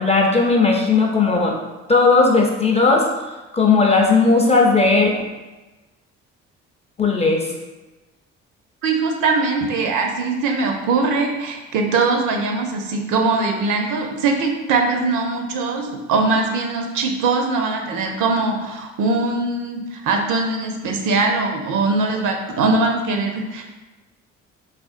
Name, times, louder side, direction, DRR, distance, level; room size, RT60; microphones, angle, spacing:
voice 1, 0.0-1.6 1.9-3.1 3.5-5.1 7.0-7.5, left 3 dB, 20° left, 0 dB, 0.5 m, -16 dB
voice 2, 8.8-23.6, right 3 dB, 55° right, 3 dB, 0.6 m, -21 dB
3.5 x 2.5 x 2.4 m, 1.1 s
hypercardioid pair, 50°, 37 cm